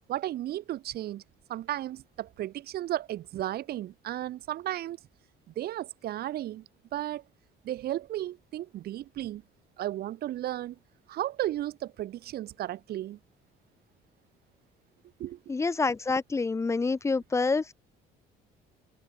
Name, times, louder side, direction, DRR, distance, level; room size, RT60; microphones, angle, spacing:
voice 1, 0.1-1.2 1.5-5.0 5.6-6.6 6.9-7.2 7.6-9.4 9.8-10.7 11.1-13.2 15.2-15.4, right 13 dB, 70° right, 3.3 m, -34 dB
voice 2, 15.5-17.7, left 4 dB, 15° left, 0.6 m, -27 dB
cardioid pair, 110°, 17 cm